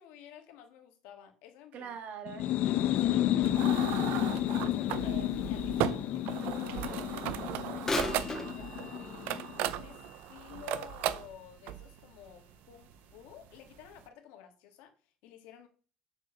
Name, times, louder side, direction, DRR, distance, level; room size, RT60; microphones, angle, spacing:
voice 1, 0.0-1.9 4.5-5.1 5.5-10.0 10.3-15.7, left 10 dB, 85° left, 5 dB, 2.0 m, -52 dB
voice 2, 1.7-2.5 3.0-3.5 4.3-4.4 4.9-5.4, right 7 dB, 55° right, 7 dB, 1.9 m, -45 dB
sound 1, 2.3-9.8, left 12 dB, 65° left, 0.7 m, -31 dB
sound 2, 3.4-14.0, right 12 dB, 75° right, 0.7 m, -37 dB
Bird vocalization bird call bird song / Telephone, 7.8-11.6 12.2-12.3 13.1-13.2 13.8-13.9, left 2 dB, 15° left, 1.8 m, -39 dB
6.4 x 4.9 x 6.3 m, 0.39 s
cardioid pair, 125°, 3 cm